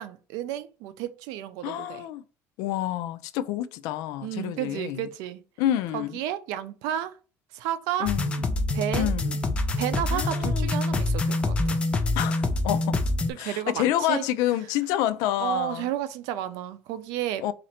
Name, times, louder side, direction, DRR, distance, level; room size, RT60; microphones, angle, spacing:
voice 1, 0.0-2.0 4.2-5.4 5.9-7.2 7.5-8.1 8.7-9.1 9.8-11.8 13.3-14.2 15.4-17.4, right 12 dB, 80° right, 0.5 m, -32 dB
voice 2, 1.6-2.2 2.6-5.1 5.6-6.2 8.0-8.4 9.0-9.4 10.1-10.7 12.1-13.0 13.4-15.9 17.4-17.5, left 13 dB, 75° left, 0.4 m, -28 dB
sound 1, 8.1-13.3, left 2 dB, 15° left, 0.5 m, -26 dB
4.2 x 2.5 x 4.2 m
cardioid pair, 160°, 6 cm